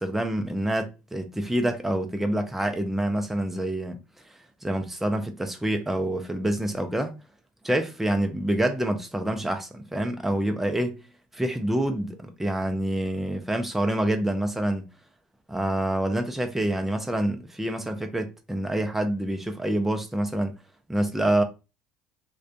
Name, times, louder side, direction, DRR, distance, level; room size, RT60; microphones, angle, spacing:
voice 1, 0.0-4.0 4.6-7.1 7.6-11.0 11.3-14.8 15.5-20.6 20.9-21.4, right 1 dB, 5° right, 0.5 m, -27 dB
2.5 x 2.2 x 2.5 m
hypercardioid pair, 80°, 5 cm